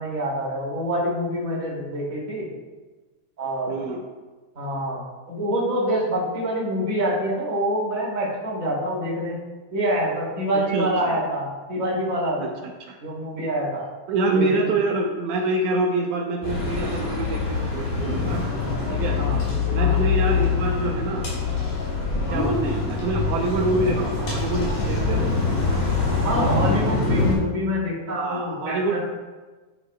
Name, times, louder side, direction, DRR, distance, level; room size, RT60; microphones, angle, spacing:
voice 1, 0.0-2.5 3.4-3.7 4.6-5.0 5.3-9.4 9.7-12.4 13.0-13.8 14.3-14.7 19.2-19.4 19.8-20.0 22.3-22.5 26.2-29.0, equal, 25° right, -5 dB, 2.5 m, -26 dB
voice 2, 3.7-4.0 10.5-11.2 12.4-13.0 14.1-18.5 18.9-19.2 19.7-21.3 22.3-25.3 28.1-29.0, right 2 dB, 80° right, 1 dB, 2.1 m, -26 dB
sound 1, 16.4-27.3, left 4 dB, 75° left, 4.4 m, -24 dB
11.5 x 7.7 x 2.2 m, 1.3 s
omnidirectional pair, 3.6 m